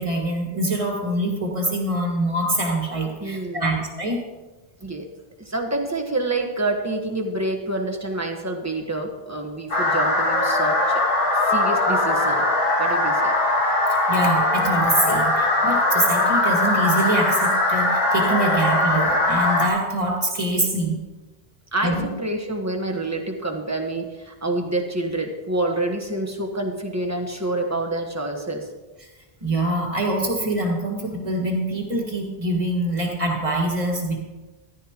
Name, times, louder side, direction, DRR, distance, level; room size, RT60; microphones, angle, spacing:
voice 1, 0.0-4.2 14.1-21.0 21.8-22.1 29.4-34.2, right 1 dB, 30° right, 0 dB, 2.0 m, -24 dB
voice 2, 3.2-3.8 4.8-5.1 5.4-11.0 11.3-12.4 12.8-13.3 21.7-28.7, right 2 dB, 15° right, 2 dB, 1.3 m, -27 dB
sound 1, 9.7-19.7, left 2 dB, 60° left, 1.9 m, -20 dB
14.5 x 11.5 x 3.0 m, 1.2 s
omnidirectional pair, 1.1 m